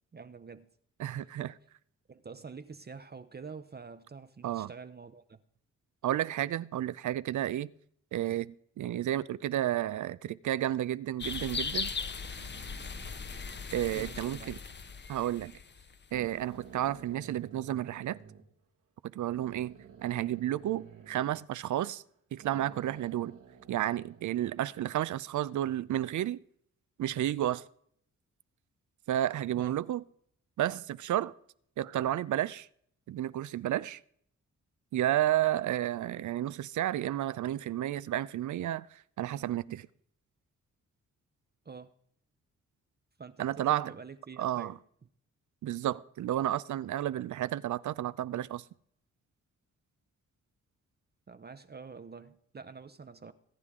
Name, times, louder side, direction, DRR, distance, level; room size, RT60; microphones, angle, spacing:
voice 1, 0.1-0.7 1.1-1.4 2.1-5.4 13.9-14.5 29.6-29.7 41.6-41.9 43.2-44.8 51.3-53.3, right 5 dB, 30° right, 0.7 m, -47 dB
voice 2, 1.0-1.6 4.4-4.7 6.0-7.7 8.1-11.9 13.7-14.6 15.1-15.5 16.1-18.2 19.1-19.7 20.0-22.0 22.3-23.4 23.7-26.4 27.0-27.7 29.1-30.0 30.6-31.3 31.8-32.7 33.1-34.0 34.9-39.9 43.4-43.9 44.4-44.7 45.6-48.6, right 12 dB, 70° right, 0.5 m, -31 dB
sound 1, 11.2-16.2, left 5 dB, 35° left, 0.9 m, -38 dB
sound 2, 12.1-15.0 15.6-15.7 16.1-18.4 19.2-22.1 22.4-24.8, right 7 dB, 90° right, 2.1 m, -52 dB
22.5 x 9.7 x 3.7 m
cardioid pair, 60°, 31 cm